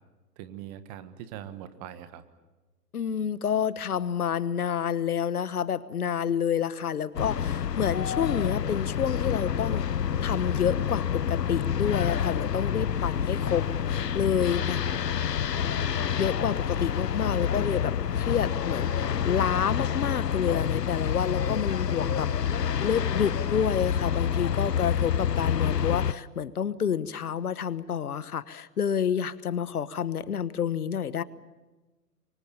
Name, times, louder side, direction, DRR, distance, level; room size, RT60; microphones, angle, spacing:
voice 1, 0.4-2.2 14.6-15.1, right 10 dB, 25° right, 12 dB, 1.5 m, -42 dB
voice 2, 2.9-9.9 10.2-14.8 16.2-18.9 19.2-22.3 22.8-31.2, left 8 dB, 65° left, 17 dB, 1.2 m, -29 dB
sound 1, 7.2-26.1, left 8 dB, 80° left, 0.8 m, -28 dB
28.0 x 24.0 x 7.0 m, 1.2 s
figure-of-eight pair, 130°, 48 cm